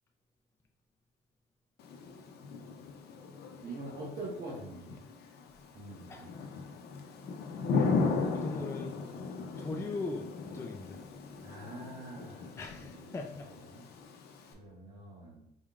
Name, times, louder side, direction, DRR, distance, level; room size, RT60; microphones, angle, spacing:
Thunder / Rain, 1.8-14.5, left 4 dB, 70° left, 0.6 m, -37 dB
voice 1, 3.6-5.0 5.7-6.3 11.4-13.2 13.7-13.9 14.5-15.5, right 2 dB, 60° right, -6 dB, 1.1 m, -44 dB
voice 2, 7.9-9.0 9.6-10.3 10.5-11.0 12.6-13.5, left 3 dB, 15° left, 2 dB, 0.4 m, -39 dB
4.1 x 3.6 x 2.4 m, 0.79 s
cardioid pair, 110°, 17 cm